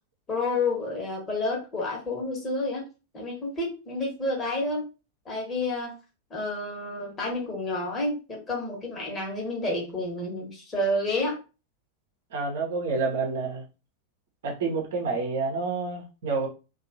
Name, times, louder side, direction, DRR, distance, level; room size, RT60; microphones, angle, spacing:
voice 1, 0.3-2.8 3.1-4.9 5.2-5.9 6.3-11.4, left 2 dB, 20° left, 1.2 m, -29 dB
voice 2, 12.3-13.6 14.4-16.5, right 4 dB, 55° right, 0.8 m, -28 dB
2.7 x 2.3 x 2.7 m
figure-of-eight pair, 90°, 0 cm